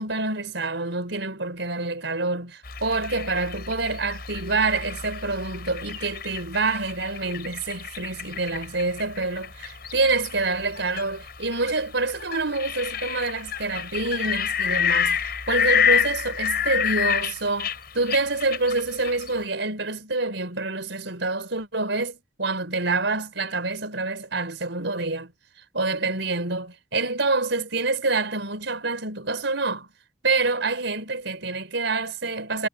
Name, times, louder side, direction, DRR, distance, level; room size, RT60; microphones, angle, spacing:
voice 1, 0.0-25.3 25.7-29.9 30.2-32.7, right 3 dB, 80° right, 4.5 m, -27 dB
sound 1, 2.6-19.4, left 8 dB, 55° left, 5.3 m, -29 dB
head